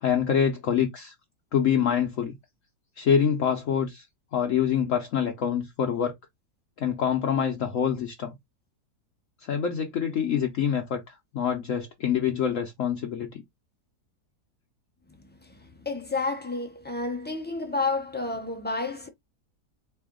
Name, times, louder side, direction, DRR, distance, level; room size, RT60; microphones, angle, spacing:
voice 1, 0.0-1.1 1.5-2.3 3.0-4.1 4.3-6.1 6.8-8.3 9.4-13.4, left 8 dB, 60° left, 1.0 m, -26 dB
voice 2, 15.4-19.1, left 3 dB, 15° left, 0.4 m, -30 dB
3.9 x 3.4 x 3.6 m
omnidirectional pair, 1.7 m